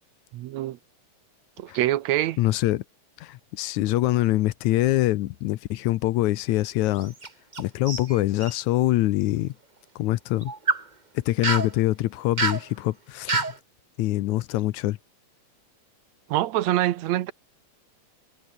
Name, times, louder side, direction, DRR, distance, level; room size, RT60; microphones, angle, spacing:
voice 1, 0.3-0.8 1.6-2.4 16.3-17.3, right 14 dB, 75° right, 2.0 m, -25 dB
voice 2, 2.4-2.8 3.2-7.1 7.6-9.5 10.0-10.5 11.2-13.5 14.0-15.0, left 16 dB, 80° left, 2.2 m, -24 dB
sound 1, 7.0-7.6 7.9-8.5 10.4-10.8 11.4-11.7 12.4-12.6 13.3-13.6, right 3 dB, 25° right, 1.0 m, -26 dB
omnidirectional pair, 3.4 m